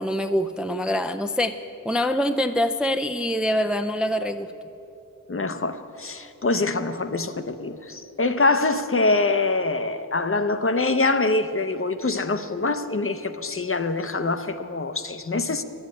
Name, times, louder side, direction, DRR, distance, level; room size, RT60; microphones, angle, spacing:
voice 1, 0.0-1.6 1.8-4.5, equal, 5° right, 8 dB, 0.4 m, -24 dB
voice 2, 5.3-15.6, left 3 dB, 40° left, 10 dB, 0.7 m, -24 dB
11.0 x 7.9 x 9.5 m, 2.8 s
wide cardioid pair, 65°, 32 cm